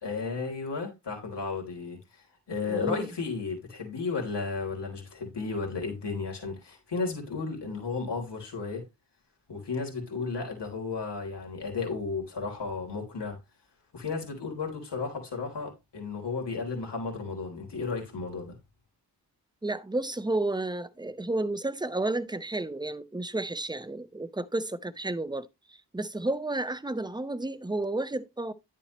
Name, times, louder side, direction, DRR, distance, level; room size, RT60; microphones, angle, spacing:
voice 1, 0.0-8.8 9.5-13.4 13.9-18.6, left 4 dB, 75° left, 3.5 m, -34 dB
voice 2, 2.7-3.1 19.6-28.5, right 2 dB, 10° right, 0.8 m, -32 dB
10.5 x 7.3 x 3.1 m
wide cardioid pair, 115°, 42 cm